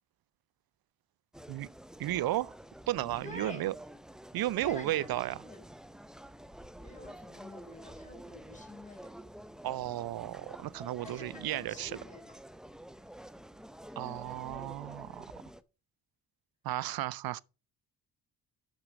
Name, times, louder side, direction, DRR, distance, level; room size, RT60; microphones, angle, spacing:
sound 1, 1.3-15.6, equal, ahead, 0.5 m, -49 dB
voice 1, 2.0-2.5 2.9-3.7 4.3-5.4 9.6-12.0 14.0-15.2 16.6-17.4, right 15 dB, 65° right, 0.5 m, -34 dB
voice 2, 3.2-3.6 4.5-5.6 6.8-9.1 11.0-12.4 13.0-13.1, left 2 dB, 20° left, 4.5 m, -48 dB
6.3 x 6.0 x 6.1 m
supercardioid pair, 60°, 40 cm